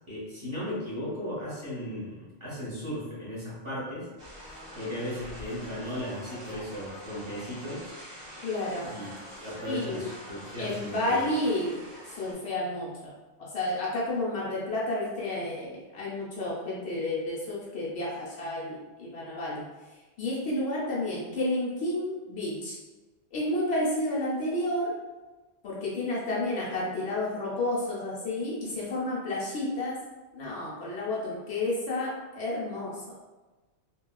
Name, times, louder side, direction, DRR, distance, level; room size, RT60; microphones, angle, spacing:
voice 1, 0.1-4.1 4.7-7.9 8.8-9.1 9.4-11.2, left 1 dB, 25° right, -10 dB, 1.0 m, -36 dB
sound 1, 4.2-12.3, equal, 50° right, 1.5 m, -45 dB
voice 2, 8.4-8.9 9.6-10.1 10.6-11.7 12.1-19.6 20.2-22.8 23.3-24.9 25.6-30.0 30.3-33.0, left 1 dB, 65° left, -6 dB, 0.9 m, -31 dB
3.0 x 2.2 x 2.2 m, 1.2 s
omnidirectional pair, 1.2 m